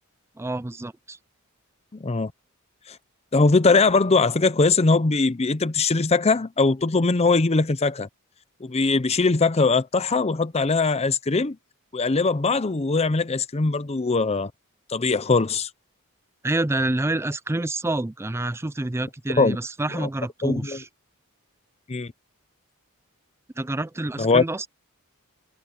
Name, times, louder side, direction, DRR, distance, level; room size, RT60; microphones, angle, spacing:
voice 1, 0.4-1.2 16.4-20.9 23.6-24.7, right 2 dB, 10° right, 0.4 m, -28 dB
voice 2, 3.3-8.1 8.6-11.6 11.9-14.5 14.9-15.7 19.4-19.6 20.0-20.1 20.4-20.8 21.9-22.1 24.2-24.4, left 3 dB, 30° left, 0.6 m, -21 dB
head